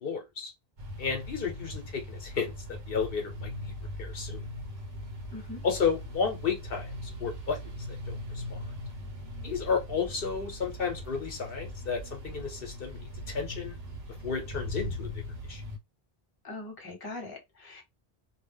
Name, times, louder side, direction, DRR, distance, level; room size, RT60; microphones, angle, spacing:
voice 1, 0.0-0.5 1.0-3.7 4.0-4.4 5.6-7.8 8.1-8.6 9.4-13.8 14.2-15.2 15.5-15.6, left 6 dB, 65° left, 0.9 m, -32 dB
sound 1, 0.8-15.8, left 1 dB, 80° right, 1.0 m, -40 dB
voice 2, 5.3-5.6 16.4-17.8, left 2 dB, 25° left, 0.8 m, -41 dB
2.4 x 2.2 x 3.5 m
omnidirectional pair, 1.0 m